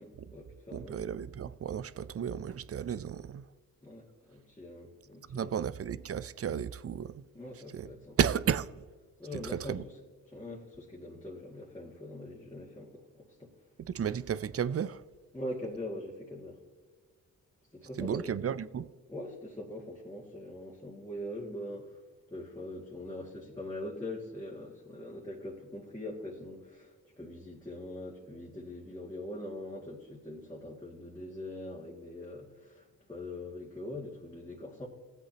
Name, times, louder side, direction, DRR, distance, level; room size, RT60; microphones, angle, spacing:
voice 1, 0.0-1.0 3.8-5.6 7.3-8.2 9.2-9.8 10.3-13.5 15.3-16.6 17.7-18.3 19.1-22.0 22.3-34.9, left 1 dB, 10° left, 2.3 m, -42 dB
voice 2, 0.7-3.5 5.3-7.2 7.7-7.9 8.2-8.7 9.3-9.8 13.8-15.0 18.0-18.9, right 8 dB, 40° right, 0.5 m, -33 dB
15.5 x 8.1 x 2.9 m
cardioid pair, 55°, 36 cm